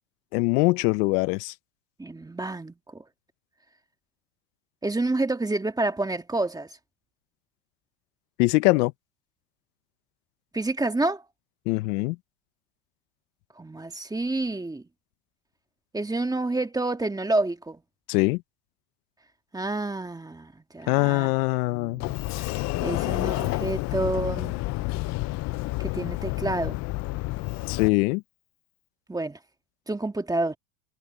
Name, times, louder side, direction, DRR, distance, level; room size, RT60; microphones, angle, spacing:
voice 1, 0.3-1.5 8.4-8.9 11.7-12.2 18.1-18.4 20.9-22.0 27.7-28.2, left 23 dB, 75° left, 0.9 m, -22 dB
voice 2, 2.0-3.0 4.8-6.8 10.5-11.3 13.6-14.8 15.9-17.8 19.5-21.3 21.7-24.5 25.8-26.8 29.1-29.4 29.9-30.6, right 2 dB, 10° right, 1.7 m, -29 dB
Sliding door, 22.0-27.9, left 20 dB, 40° left, 0.4 m, -29 dB
supercardioid pair, 120°, 47 cm